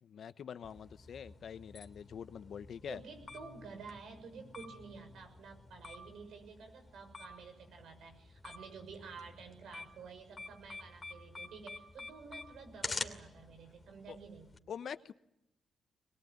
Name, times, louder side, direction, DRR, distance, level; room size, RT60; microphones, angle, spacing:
voice 1, 0.0-3.0 14.1-14.2 14.7-15.1, left 8 dB, 70° left, 13 dB, 1.0 m, -45 dB
sound 1, 0.6-14.6, left 3 dB, 35° left, 2.7 m, -48 dB
voice 2, 2.9-14.5, right 5 dB, 80° right, 5 dB, 6.3 m, -51 dB
22.5 x 21.5 x 9.4 m, 0.81 s
cardioid pair, 70°, 0 cm